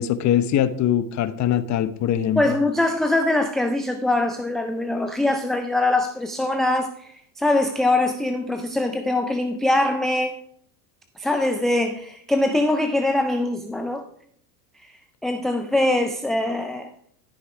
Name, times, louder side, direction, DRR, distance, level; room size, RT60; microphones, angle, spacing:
voice 1, 0.0-2.6, left 10 dB, 35° left, 0.9 m, -22 dB
voice 2, 2.4-10.4 11.2-14.0 14.8-14.9 15.2-16.9, left 2 dB, ahead, 0.3 m, -23 dB
13.0 x 5.6 x 4.8 m
hypercardioid pair, 105°, 49 cm